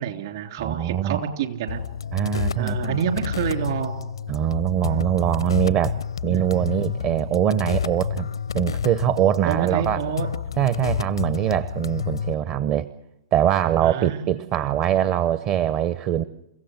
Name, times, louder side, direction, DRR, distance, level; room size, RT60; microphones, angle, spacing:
voice 1, 0.0-1.8 2.6-4.1 6.3-6.5 9.4-10.3 13.8-14.2, right 9 dB, 55° right, 5 dB, 3.4 m, -28 dB
voice 2, 0.6-1.2 2.1-3.0 4.3-5.9 6.2-8.3 8.5-10.1 10.6-12.9 13.3-16.2, right 10 dB, 35° right, 14 dB, 0.8 m, -23 dB
sound 1, 1.7-12.3, left 7 dB, 75° left, 0.7 m, -30 dB
29.5 x 16.0 x 6.5 m, 0.93 s
figure-of-eight pair, 110°, 3 cm